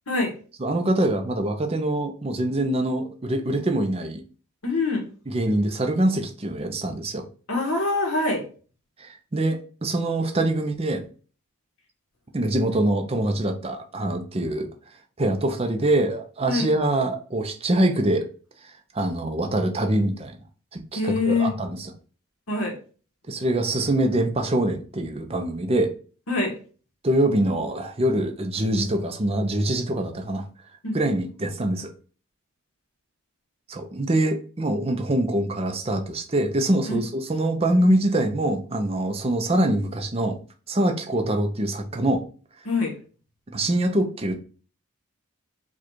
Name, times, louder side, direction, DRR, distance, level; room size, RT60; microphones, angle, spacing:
voice 1, 0.6-4.2 5.3-7.2 9.0-11.0 12.3-14.7 15.2-18.3 18.6-20.4 20.7-21.9 23.3-25.9 27.0-30.4 30.9-31.9 33.7-40.4 40.7-42.2 43.5-44.4, right 1 dB, 25° right, 5 dB, 0.5 m, -24 dB
voice 2, 4.6-5.1 7.5-8.5 16.5-16.7 20.9-21.5 22.5-22.7 26.3-26.6 30.8-31.0 36.9-37.0 42.6-43.0, left 3 dB, 80° left, 1 dB, 1.3 m, -24 dB
4.8 x 2.4 x 4.5 m, 0.39 s
head